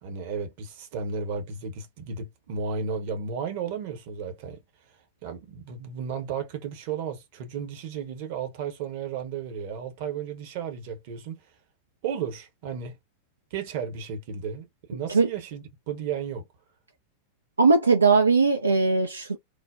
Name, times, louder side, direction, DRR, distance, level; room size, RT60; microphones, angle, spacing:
voice 1, 0.0-4.6 5.2-11.3 12.0-13.0 13.5-16.5, right 6 dB, 50° right, 0.8 m, -34 dB
voice 2, 17.6-19.4, right 4 dB, 80° right, 0.3 m, -20 dB
3.2 x 2.1 x 2.3 m
figure-of-eight pair, 90°, 0 cm